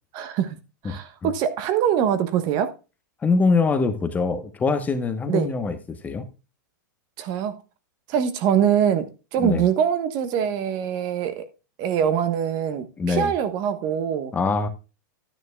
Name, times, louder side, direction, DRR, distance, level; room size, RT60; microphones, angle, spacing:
voice 1, 0.1-0.6 0.8-2.7 5.3-5.5 7.2-7.6 8.1-11.4 11.8-14.3, right 9 dB, 40° right, 1.2 m, -23 dB
voice 2, 0.8-1.3 3.2-6.3 9.4-9.7 13.0-13.3 14.3-14.7, left 4 dB, 15° left, 1.0 m, -23 dB
11.0 x 9.6 x 2.3 m
hypercardioid pair, 135°, 10 cm